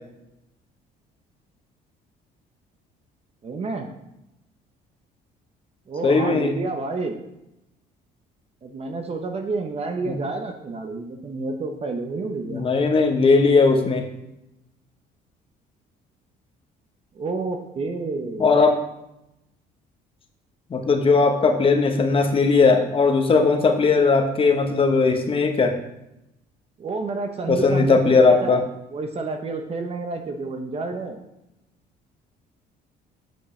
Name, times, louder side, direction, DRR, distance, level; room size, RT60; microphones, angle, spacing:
voice 1, 3.4-3.9 5.9-7.2 8.6-12.7 17.1-18.6 26.8-28.6 28.9-31.2, right 3 dB, 35° right, 5 dB, 0.8 m, -29 dB
voice 2, 6.0-6.5 10.0-10.1 12.5-14.0 18.4-18.7 20.7-25.7 27.5-28.6, left 4 dB, 30° left, 5 dB, 1.0 m, -18 dB
8.4 x 5.9 x 3.3 m, 0.87 s
cardioid pair, 110°, 17 cm